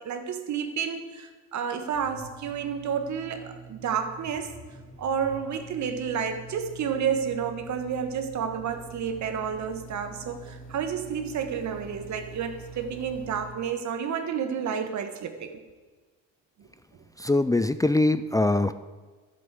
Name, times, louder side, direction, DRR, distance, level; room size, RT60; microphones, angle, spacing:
voice 1, 0.0-4.6 5.0-15.6 16.6-16.7, right 7 dB, 70° right, 7 dB, 1.6 m, -30 dB
sound 1, 1.9-13.5, right 4 dB, 30° left, 3.3 m, -45 dB
voice 2, 17.2-18.7, left 2 dB, 10° left, 12 dB, 0.4 m, -22 dB
11.5 x 7.6 x 8.0 m, 1.4 s
cardioid pair, 90°, 30 cm